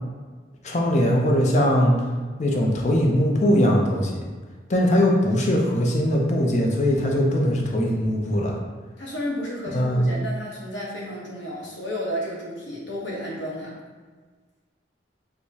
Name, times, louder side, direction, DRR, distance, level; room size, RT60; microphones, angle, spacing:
voice 1, 0.6-1.9 2.4-4.2 4.7-8.5 9.7-10.1, equal, 40° left, 0 dB, 0.5 m, -20 dB
voice 2, 9.0-13.7, equal, 85° left, -4 dB, 1.0 m, -32 dB
4.6 x 2.1 x 2.7 m, 1.4 s
head